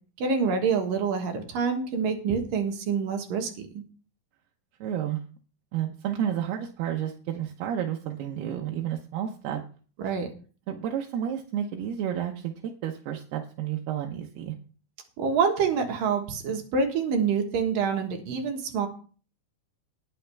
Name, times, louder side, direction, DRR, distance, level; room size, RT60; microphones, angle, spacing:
voice 1, 0.2-3.8 10.0-10.3 15.2-18.9, right 5 dB, 65° right, 4 dB, 3.1 m, -26 dB
voice 2, 4.8-5.2 5.7-9.6 10.7-14.5, right 10 dB, 85° right, 2 dB, 2.9 m, -31 dB
19.5 x 6.6 x 3.4 m, 0.39 s
omnidirectional pair, 4.5 m